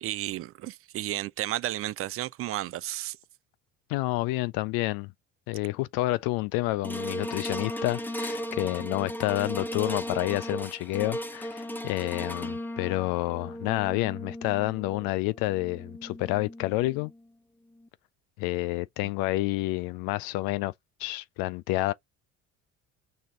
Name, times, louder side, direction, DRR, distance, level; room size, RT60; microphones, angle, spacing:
voice 1, 0.0-3.2 19.0-19.1, right 14 dB, 40° right, 0.4 m, -33 dB
voice 2, 3.9-5.1 5.5-17.1 18.4-20.7 21.0-21.9, left 19 dB, 65° left, 0.5 m, -29 dB
sound 1, 6.8-17.2 17.8-17.9, equal, 5° left, 0.6 m, -36 dB
4.9 x 2.8 x 3.7 m
hypercardioid pair, 60°, 39 cm